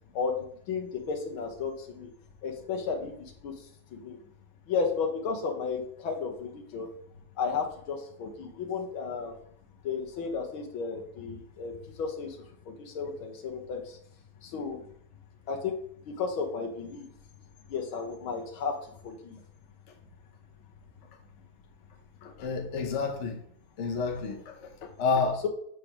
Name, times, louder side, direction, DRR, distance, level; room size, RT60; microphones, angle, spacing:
voice 1, 0.7-2.1 2.4-3.5 3.9-4.2 4.7-6.9 7.4-9.4 9.8-12.4 12.8-14.0 14.4-14.8 15.5-15.8 16.1-17.1 17.7-18.7 19.0-19.4, left 5 dB, 90° left, 3 dB, 2.0 m, -33 dB
voice 2, 22.2-23.4 23.8-25.4, left 4 dB, 45° left, 3 dB, 1.1 m, -30 dB
7.7 x 3.3 x 5.9 m, 0.65 s
omnidirectional pair, 2.2 m